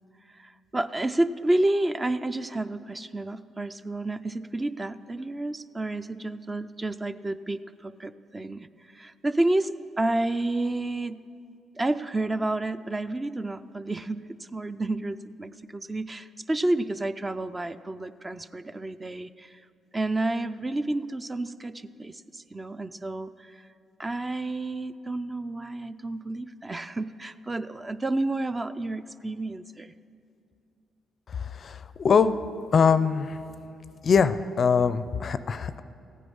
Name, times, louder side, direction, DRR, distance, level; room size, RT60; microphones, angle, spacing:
voice 1, 0.3-8.7 8.9-11.2 11.8-19.6 19.9-23.7 24.0-29.9, right 2 dB, 20° right, 12 dB, 0.4 m, -30 dB
voice 2, 31.3-32.4 32.7-33.4 34.0-35.8, left 6 dB, 45° left, 14 dB, 0.4 m, -23 dB
14.5 x 9.3 x 5.4 m, 2.5 s
cardioid pair, 90°, 0 cm